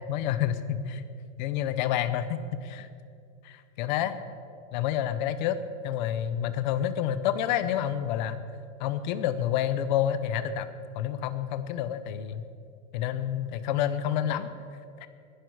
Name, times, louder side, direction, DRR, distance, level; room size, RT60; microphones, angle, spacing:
voice 1, 0.1-1.0 1.4-2.9 3.4-4.1 4.7-5.6 5.8-8.4 8.8-10.7 10.9-12.4 12.9-14.5 15.0-15.1, left 10 dB, 40° left, 12 dB, 0.7 m, -28 dB
20.5 x 11.5 x 4.7 m, 2.5 s
supercardioid pair, 180°, 38 cm